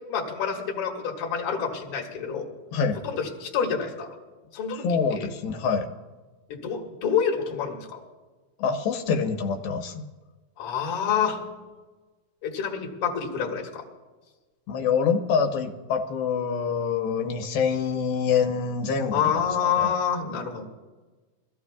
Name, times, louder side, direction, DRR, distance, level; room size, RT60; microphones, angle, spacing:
voice 1, 0.1-2.5 3.0-4.1 4.5-5.3 6.5-8.0 10.6-11.4 12.4-13.8 19.1-20.7, left 7 dB, 45° left, 0 dB, 2.4 m, -27 dB
voice 2, 2.7-3.0 4.7-5.9 8.6-10.0 14.7-19.9, left 6 dB, 90° left, 5 dB, 2.9 m, -26 dB
23.0 x 15.0 x 2.4 m, 1.3 s
omnidirectional pair, 4.1 m